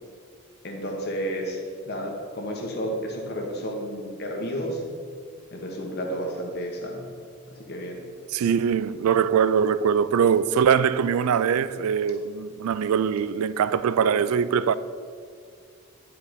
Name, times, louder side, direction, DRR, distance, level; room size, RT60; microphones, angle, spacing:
voice 1, 0.6-4.8 5.5-7.1 7.7-8.0, equal, 45° left, 1.2 m, -31 dB
voice 2, 8.3-14.8, right 7 dB, 75° right, 0.3 m, -22 dB
10.5 x 4.8 x 5.1 m
head